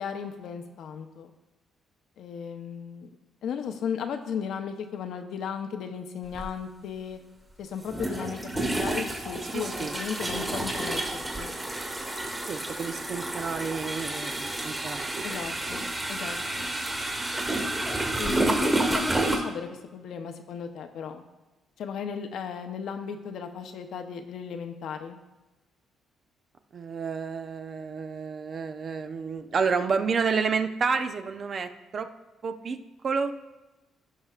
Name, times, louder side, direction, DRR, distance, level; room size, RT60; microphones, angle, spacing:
voice 1, 0.0-1.3 2.2-3.1 3.4-7.2 7.6-11.5 15.2-16.7 18.2-21.2 21.8-25.2, left 7 dB, 75° left, 6 dB, 0.8 m, -35 dB
sound 1, 6.3-6.5 7.8-19.4, right 2 dB, 20° right, 1.8 m, -30 dB
voice 2, 9.5-10.0 12.5-15.5 26.7-32.1 32.4-32.8 33.0-33.3, right 5 dB, 50° right, 8 dB, 0.6 m, -30 dB
16.0 x 5.6 x 2.4 m, 1.1 s
cardioid pair, 90°, 0 cm